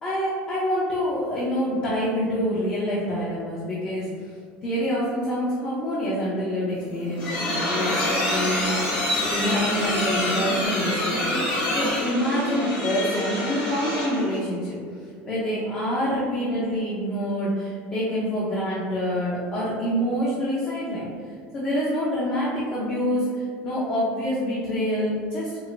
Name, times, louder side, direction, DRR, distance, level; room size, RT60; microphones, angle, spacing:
voice 1, 0.0-4.3 4.6-14.8 15.3-25.6, equal, 30° left, -7 dB, 0.7 m, -26 dB
sound 1, 6.8-14.3, left 1 dB, 70° left, 1.5 m, -26 dB
4.8 x 2.0 x 2.6 m, 2.2 s
cardioid pair, 135°, 5 cm